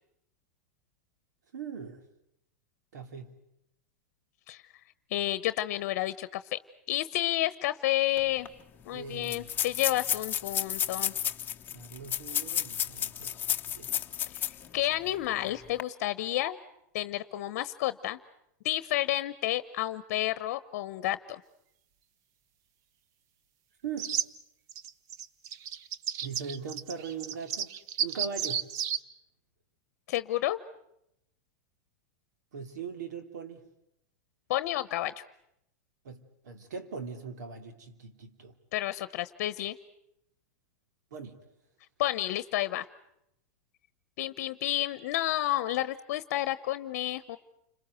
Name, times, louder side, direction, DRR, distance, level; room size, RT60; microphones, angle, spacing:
voice 1, 1.5-2.1 2.9-3.4 8.9-9.5 11.7-13.4 13.7-13.9 23.8-24.2 26.2-27.7 28.0-28.7 32.5-33.7 36.0-38.6 41.1-41.5, right 6 dB, 85° right, 7 dB, 2.9 m, -40 dB
voice 2, 5.1-6.6 6.9-8.5 8.9-11.1 14.3-14.4 14.7-16.6 16.9-18.2 18.6-21.4 30.1-30.6 34.5-35.1 38.7-39.8 42.0-42.8 44.2-47.4, left 15 dB, 60° left, 15 dB, 1.0 m, -30 dB
sound 1, 8.2-8.3 8.4-8.5 9.2-14.7 15.1-15.2 15.6-15.8, left 10 dB, 20° left, 1.0 m, -32 dB
sound 2, 24.0-24.2 24.7-29.0, right 8 dB, 40° right, 0.9 m, -33 dB
30.0 x 21.5 x 8.0 m, 0.79 s
supercardioid pair, 145°, 9 cm